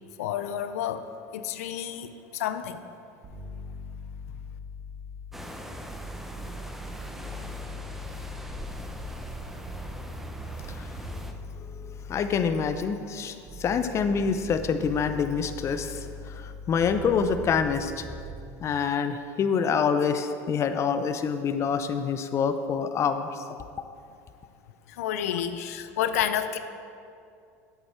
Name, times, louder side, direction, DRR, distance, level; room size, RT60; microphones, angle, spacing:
voice 1, 0.2-1.1 1.3-2.8 24.9-26.6, left 10 dB, 80° left, 10 dB, 0.5 m, -30 dB
sound 1, 3.2-5.4 5.8-13.0 13.5-18.5, left 1 dB, 45° right, 1.7 m, -41 dB
sound 2, 5.3-11.3, equal, 5° right, 0.7 m, -40 dB
voice 2, 12.1-18.1 18.6-23.3, left 6 dB, 35° left, 9 dB, 0.6 m, -26 dB
8.4 x 8.1 x 4.3 m, 2.4 s
hypercardioid pair, 95°, 8 cm